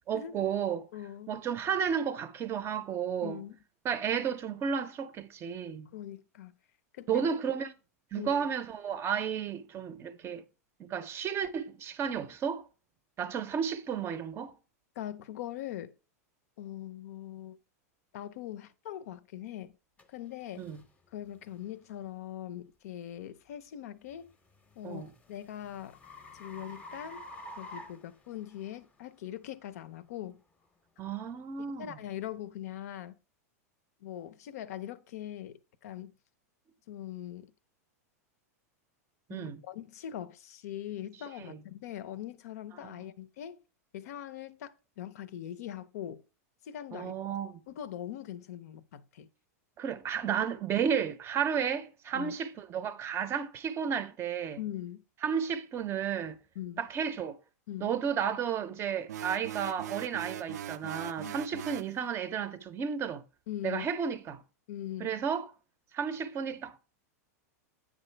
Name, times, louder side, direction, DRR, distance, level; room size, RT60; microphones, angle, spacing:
voice 1, 0.1-0.9 1.3-3.4 3.8-5.9 7.1-7.7 8.1-10.4 10.8-12.7 13.2-14.5 20.6-20.8 24.8-25.1 31.0-31.9 39.3-39.6 41.5-41.6 46.9-47.6 49.8-54.6 55.2-56.4 56.8-57.4 57.8-63.2 63.6-64.4 65.0-65.5 65.9-66.8, right 7 dB, 30° right, 0.5 m, -32 dB
voice 2, 0.9-1.4 3.2-3.6 5.9-6.5 6.9-7.3 8.1-8.5 15.0-15.9 16.6-17.6 18.1-19.7 20.1-20.7 21.1-24.3 24.8-26.0 26.4-27.2 27.6-30.4 31.8-33.2 34.0-36.1 36.9-37.5 39.3-43.6 43.9-46.2 46.6-47.1 47.7-49.3 52.1-52.3 54.6-55.0 56.6-56.8 57.7-57.9 61.2-61.3 63.5-63.9 64.7-65.1, left 11 dB, 70° left, 0.6 m, -41 dB
sound 1, 20.0-20.1 20.7-20.9 21.5-21.7 24.3-28.8, left 1 dB, 15° left, 0.7 m, -48 dB
sound 2, 59.1-61.9, right 10 dB, 80° right, 0.4 m, -40 dB
8.2 x 5.1 x 3.3 m
hypercardioid pair, 125°, 9 cm